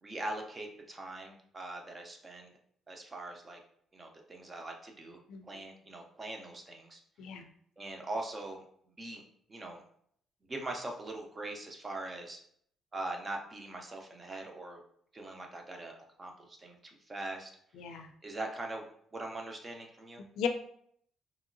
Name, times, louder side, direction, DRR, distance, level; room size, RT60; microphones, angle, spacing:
voice 1, 0.0-2.5 2.9-3.6 3.9-5.2 5.5-7.0 7.8-8.6 9.0-9.2 9.5-9.8 10.5-12.4 12.9-14.8 15.1-16.8 17.1-17.5 18.2-18.8 19.1-20.2, right 2 dB, 25° right, 2 dB, 0.5 m, -41 dB
voice 2, 17.7-18.1 20.2-20.5, left 7 dB, 85° left, 6 dB, 0.3 m, -36 dB
2.9 x 2.6 x 2.5 m, 0.66 s
cardioid pair, 130°, 0 cm